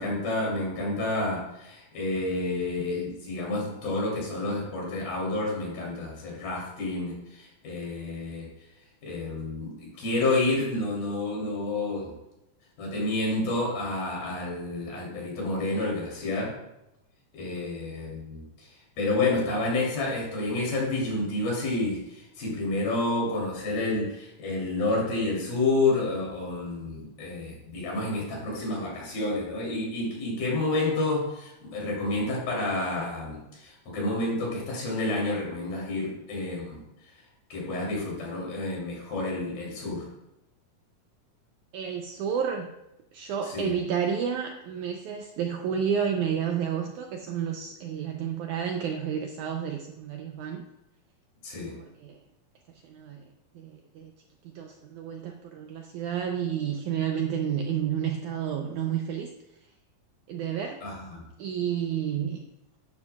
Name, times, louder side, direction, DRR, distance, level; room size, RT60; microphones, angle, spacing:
voice 1, 0.0-8.5 9.0-12.1 12.8-16.5 17.3-18.7 19.0-36.8 37.5-40.1 43.5-43.7 51.4-51.8 60.8-61.3, left 2 dB, 75° left, -3 dB, 4.9 m, -29 dB
voice 2, 41.7-42.7 43.1-50.7 51.8-52.2 52.8-53.2 53.5-54.1 54.5-59.3 60.3-60.8 61.4-62.4, right 8 dB, 85° right, 4 dB, 1.7 m, -30 dB
11.5 x 11.0 x 2.3 m, 0.90 s
omnidirectional pair, 4.2 m